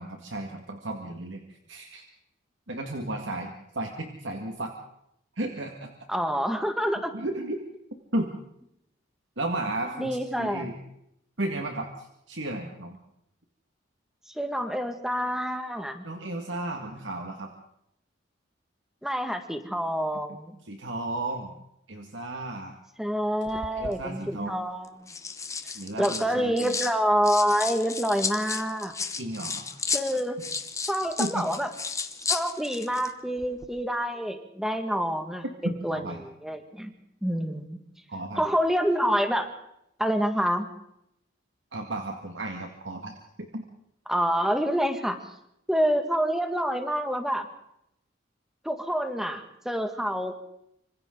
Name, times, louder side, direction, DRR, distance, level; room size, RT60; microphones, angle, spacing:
voice 1, 0.0-2.0 2.7-4.7 5.4-5.9 7.1-7.6 8.1-8.3 9.4-10.7 11.4-13.0 16.0-17.5 20.7-21.6 21.9-22.7 23.8-24.6 25.8-26.7 29.1-29.6 31.2-31.5 35.6-36.2 38.1-38.4 41.7-43.6, right 1 dB, 70° right, 3 dB, 2.1 m, -34 dB
voice 2, 6.1-7.1 10.0-10.7 14.3-16.0 19.0-20.6 23.0-25.1 26.0-28.9 29.9-30.4 30.9-31.7 32.2-36.9 37.2-37.8 38.3-39.5 40.0-40.7 44.1-45.2 45.7-47.5 48.6-50.4, equal, ahead, 6 dB, 1.9 m, -27 dB
sound 1, 23.5-24.0 24.8-26.9 27.2-33.1 33.4-33.7, left 5 dB, 15° left, 1.0 m, -33 dB
26.0 x 26.0 x 4.0 m, 0.77 s
head